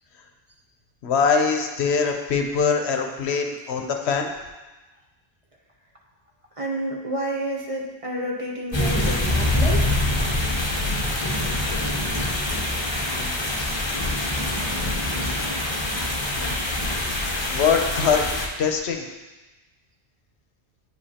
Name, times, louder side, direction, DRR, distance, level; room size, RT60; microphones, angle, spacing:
voice 1, 1.0-4.3 13.1-13.6 17.5-19.0, left 5 dB, 75° left, 4 dB, 0.9 m, -23 dB
voice 2, 6.6-9.8, right 1 dB, 35° right, -2 dB, 0.8 m, -29 dB
sound 1, 8.7-18.5, left 1 dB, 30° left, 0.8 m, -25 dB
9.5 x 4.9 x 2.8 m, 1.2 s
omnidirectional pair, 1.1 m